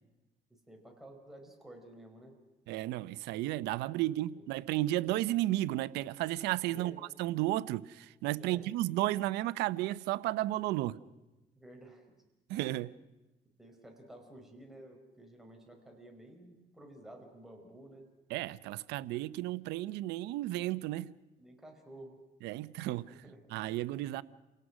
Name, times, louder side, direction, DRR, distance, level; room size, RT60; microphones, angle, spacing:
voice 1, 0.5-2.3 6.7-7.0 8.4-8.6 11.6-12.1 13.6-18.1 21.4-22.2 23.1-23.5, right 1 dB, ahead, 5.1 m, -52 dB
voice 2, 2.7-11.0 12.5-12.9 18.3-21.1 22.4-23.1 23.5-24.2, right 16 dB, 90° right, 0.7 m, -33 dB
28.5 x 18.0 x 6.2 m
cardioid pair, 110°, 17 cm